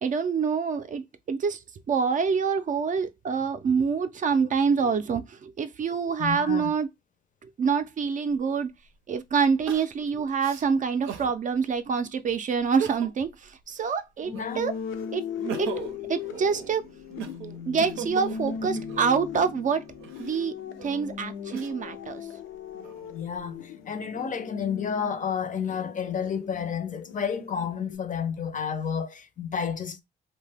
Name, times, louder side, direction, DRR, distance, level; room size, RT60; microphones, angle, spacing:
voice 1, 0.0-1.6 1.9-6.9 7.4-8.7 9.1-14.7 15.1-15.2 15.6-15.7 16.1-16.8 17.7-19.8 20.2-20.5 20.8-22.3, right 6 dB, 40° right, 0.4 m, -26 dB
voice 2, 6.2-6.7 14.2-14.6 23.1-30.0, left 7 dB, 40° left, 0.5 m, -31 dB
Crying sobbing, 8.3-8.4 9.7-11.3 11.9-12.0 12.6-13.3 13.7-14.7 15.2-19.2 19.9-22.0 22.6-23.4, right 8 dB, 90° right, 0.6 m, -39 dB
sound 1, 14.2-28.0, left 7 dB, 85° left, 0.6 m, -38 dB
2.7 x 2.1 x 3.3 m
cardioid pair, 90°, 20 cm